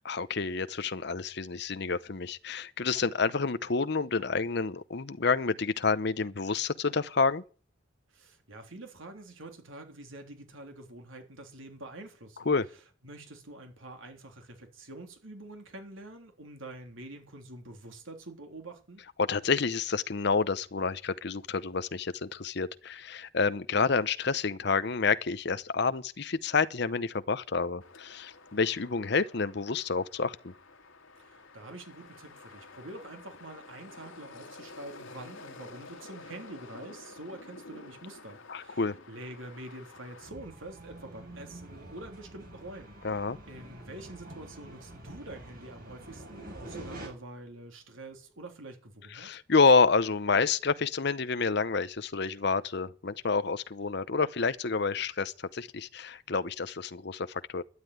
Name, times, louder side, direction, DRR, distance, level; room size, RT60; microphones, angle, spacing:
voice 1, 0.0-7.4 12.5-12.7 19.2-30.5 38.5-39.0 43.0-43.4 49.1-57.6, left 4 dB, 55° left, 0.8 m, -28 dB
voice 2, 8.1-12.5 13.0-19.0 31.2-43.2 43.5-49.3, right 2 dB, 80° right, 3.6 m, -46 dB
sound 1, 27.8-40.3, left 3 dB, 90° left, 2.3 m, -50 dB
sound 2, 40.2-47.1, right 1 dB, 45° right, 7.3 m, -46 dB
12.5 x 9.9 x 9.5 m
head